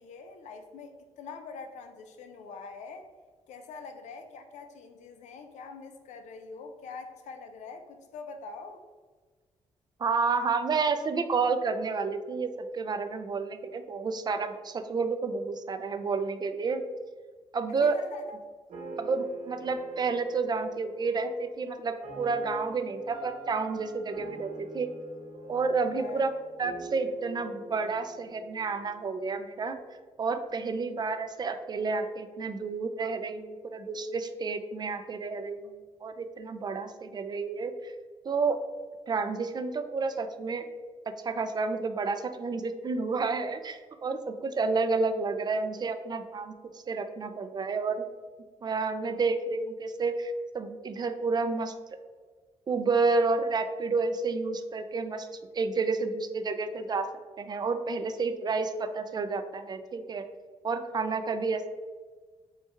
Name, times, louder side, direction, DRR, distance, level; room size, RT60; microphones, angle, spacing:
voice 1, 0.0-3.1 3.5-8.8 17.8-18.4 26.0-26.3, left 4 dB, 90° left, 6 dB, 0.5 m, -44 dB
voice 2, 10.0-16.8 17.5-18.0 19.0-24.9 25.5-26.3 26.6-29.8 30.2-35.6 36.0-37.9 38.3-38.6 39.1-40.6 41.1-48.0 48.6-51.7 52.7-55.3 55.5-57.1 57.4-60.3 60.6-61.7, right 4 dB, 35° right, 9 dB, 0.4 m, -30 dB
sound 1, 18.7-29.8, right 1 dB, 80° right, 1.4 m, -45 dB
4.5 x 2.3 x 4.3 m, 1.4 s
cardioid pair, 100°, 12 cm